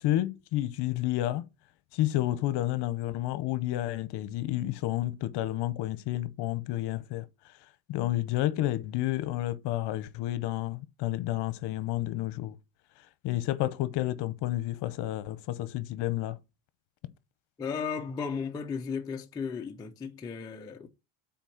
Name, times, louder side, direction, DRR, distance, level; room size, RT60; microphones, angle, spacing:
voice 1, 0.0-1.4 1.9-7.3 7.9-12.5 13.2-16.4, left 15 dB, 55° left, 0.8 m, -30 dB
voice 2, 17.6-20.9, left 6 dB, 10° left, 0.3 m, -35 dB
5.9 x 4.3 x 5.8 m
cardioid pair, 145°, 50 cm